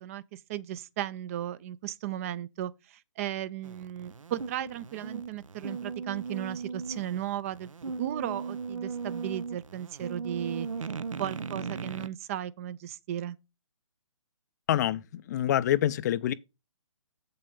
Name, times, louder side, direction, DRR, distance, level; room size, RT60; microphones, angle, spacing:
voice 1, 0.0-7.7 8.0-10.9 11.2-13.4, right 12 dB, 25° right, 0.4 m, -36 dB
sound 1, 3.6-12.1, right 5 dB, 85° right, 0.6 m, -37 dB
voice 2, 14.7-16.3, left 12 dB, 35° left, 0.4 m, -26 dB
7.4 x 5.6 x 5.3 m
hypercardioid pair, 140°, 16 cm